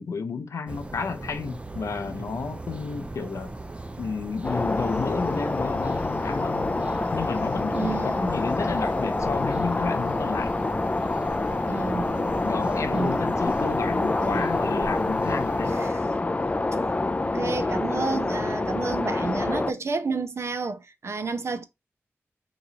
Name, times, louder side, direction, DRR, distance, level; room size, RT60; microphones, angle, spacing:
voice 1, 0.0-3.5 4.0-10.5 12.4-15.8, left 5 dB, 85° left, 0.6 m, -31 dB
sound 1, 0.7-15.9, right 2 dB, 20° right, 0.5 m, -39 dB
sound 2, 4.4-19.7, left 2 dB, 30° left, 0.4 m, -27 dB
voice 2, 7.7-8.3 11.7-12.2 12.9-13.2 14.2-14.5 15.7-16.0 17.2-21.6, right 4 dB, 60° right, 0.7 m, -31 dB
3.9 x 3.0 x 2.8 m
cardioid pair, 65°, 5 cm